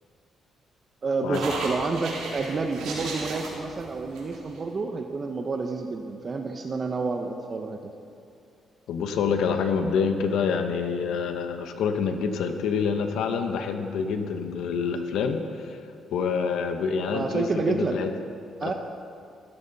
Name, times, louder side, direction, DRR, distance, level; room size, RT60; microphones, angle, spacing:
voice 1, 1.0-7.9 17.1-18.0 18.6-18.7, right 4 dB, 40° right, 4 dB, 1.0 m, -29 dB
sound 1, 1.3-4.6, right 3 dB, 90° right, 3.7 m, -35 dB
voice 2, 8.9-15.8 16.1-18.1 18.6-18.7, left 6 dB, 80° left, 6 dB, 1.2 m, -27 dB
14.5 x 14.5 x 4.1 m, 2.3 s
cardioid pair, 90°, 0 cm